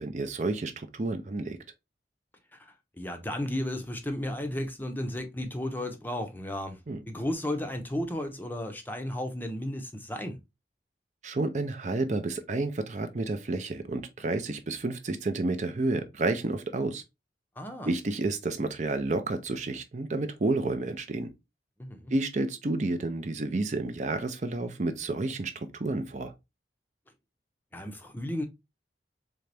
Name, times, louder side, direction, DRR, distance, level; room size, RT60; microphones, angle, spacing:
voice 1, 0.0-1.6 6.9-7.0 11.2-17.0 17.9-21.3 22.1-26.3, right 2 dB, 40° right, 0.5 m, -30 dB
voice 2, 2.5-6.8 7.1-10.4 17.6-17.9 21.8-22.1 27.7-28.4, left 1 dB, 10° left, 0.6 m, -34 dB
3.9 x 3.3 x 3.3 m
head